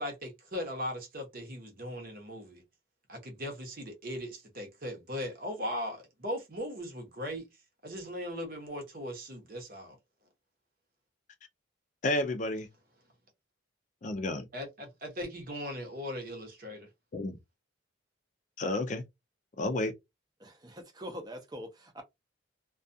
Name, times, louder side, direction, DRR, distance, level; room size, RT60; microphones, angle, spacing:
voice 1, 0.0-2.6 3.1-7.4 7.8-10.0 14.5-16.9, equal, 45° right, 0.9 m, -38 dB
voice 2, 12.0-12.7 14.0-14.5 17.1-17.4 18.6-19.0 19.6-19.9, left 2 dB, 40° left, 0.4 m, -31 dB
voice 3, 20.4-22.0, equal, 20° right, 0.6 m, -43 dB
2.3 x 2.3 x 2.6 m
head